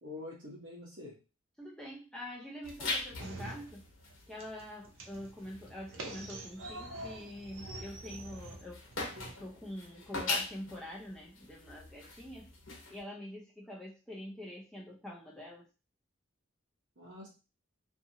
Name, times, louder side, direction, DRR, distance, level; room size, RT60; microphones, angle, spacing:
voice 1, 0.0-1.2 17.0-17.3, left 2 dB, 60° right, -7 dB, 1.0 m, -46 dB
voice 2, 1.6-3.9 4.3-8.8 9.4-12.5 12.9-15.7, left 1 dB, 5° left, -4 dB, 0.5 m, -45 dB
sound 1, 2.6-13.0, left 3 dB, 70° left, 1.0 m, -42 dB
sound 2, 3.2-4.1 4.4-9.3, right 2 dB, 75° right, 0.6 m, -46 dB
2.7 x 2.6 x 2.7 m, 0.31 s
head